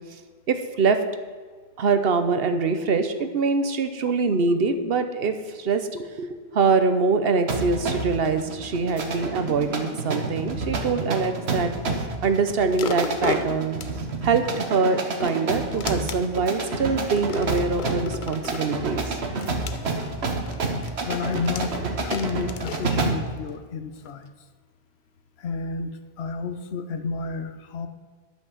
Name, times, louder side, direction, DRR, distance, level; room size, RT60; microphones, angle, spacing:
voice 1, 0.5-1.0 1.8-11.7 12.2-13.8 14.2-19.2, right 4 dB, 70° right, 8 dB, 1.1 m, -24 dB
sound 1, 7.5-23.3, right 3 dB, 85° right, 1.4 m, -29 dB
sound 2, 12.8-14.6 15.1-16.5 17.1-18.7 19.4-23.5 24.1-24.2, left 6 dB, 55° left, 0.8 m, -34 dB
voice 2, 21.0-24.3 25.4-27.9, left 4 dB, 90° left, 9 dB, 1.1 m, -31 dB
11.0 x 5.9 x 7.2 m, 1.5 s
omnidirectional pair, 1.0 m